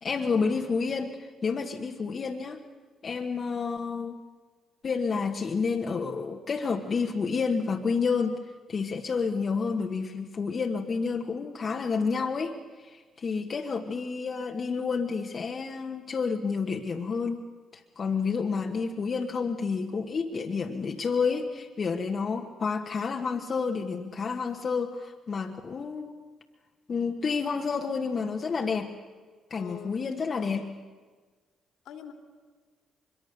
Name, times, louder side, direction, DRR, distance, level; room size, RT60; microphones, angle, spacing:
voice 1, 0.0-2.6 3.0-4.2 4.8-8.4 8.7-17.4 17.7-26.1 26.9-28.9 29.5-30.7, left 5 dB, 50° left, 2 dB, 1.4 m, -30 dB
voice 2, 29.6-30.1 31.8-32.1, left 9 dB, 70° left, 6 dB, 2.4 m, -44 dB
24.5 x 22.5 x 6.7 m, 1.5 s
hypercardioid pair, 50°, 0 cm